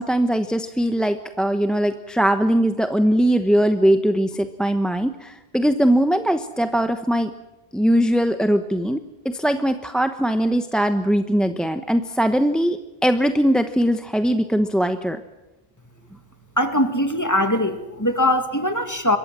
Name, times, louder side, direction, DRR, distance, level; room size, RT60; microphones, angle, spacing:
voice 1, 0.0-7.3 7.7-9.0 9.3-15.2, equal, ahead, 8 dB, 1.0 m, -20 dB
voice 2, 16.6-19.2, left 1 dB, 15° left, 7 dB, 2.3 m, -21 dB
26.5 x 23.0 x 7.6 m, 1.0 s
omnidirectional pair, 1.1 m